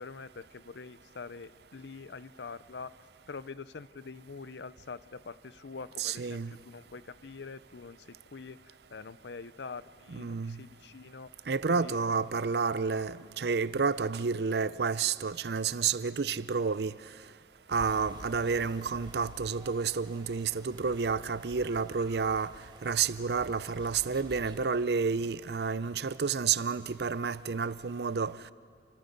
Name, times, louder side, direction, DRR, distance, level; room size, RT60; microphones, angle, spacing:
voice 1, 0.0-2.9 3.3-12.5, left 4 dB, 80° left, 0.6 m, -45 dB
voice 2, 6.0-6.5 10.1-10.6 11.5-17.0 17.7-22.5 22.8-28.4, right 5 dB, 70° right, 0.6 m, -30 dB
sound 1, 17.7-24.6, right 1 dB, 25° right, 1.4 m, -50 dB
29.0 x 26.0 x 5.3 m
head